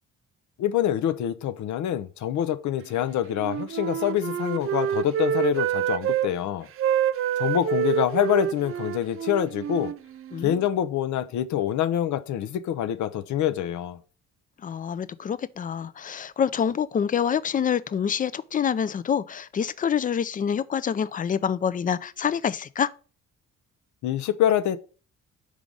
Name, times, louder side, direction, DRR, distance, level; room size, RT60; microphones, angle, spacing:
voice 1, 0.6-6.7 7.4-9.9 10.4-14.0 24.0-24.8, left 11 dB, 70° left, 0.6 m, -26 dB
Wind instrument woodwind instrument, 3.3-6.3 6.8-10.6, right 9 dB, 45° right, 0.4 m, -27 dB
voice 2, 14.6-22.9, left 8 dB, 30° left, 0.4 m, -26 dB
4.9 x 3.8 x 5.3 m
cardioid pair, 90°, 30 cm